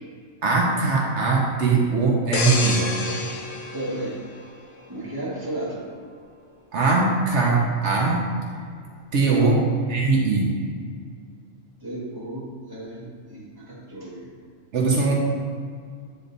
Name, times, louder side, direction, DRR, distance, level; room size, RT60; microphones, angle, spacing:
voice 1, 0.4-2.8 6.7-8.2 9.1-9.6 9.9-10.5 14.7-15.1, right 3 dB, 75° right, -2 dB, 1.2 m, -20 dB
sound 1, 2.3-5.0 5.5-5.7, left 3 dB, 85° left, 1.1 m, -29 dB
voice 2, 3.7-4.2 4.9-5.8 9.3-9.5 11.8-14.3, right 1 dB, 20° right, -6 dB, 1.6 m, -33 dB
9.2 x 3.8 x 4.0 m, 2.1 s
omnidirectional pair, 1.2 m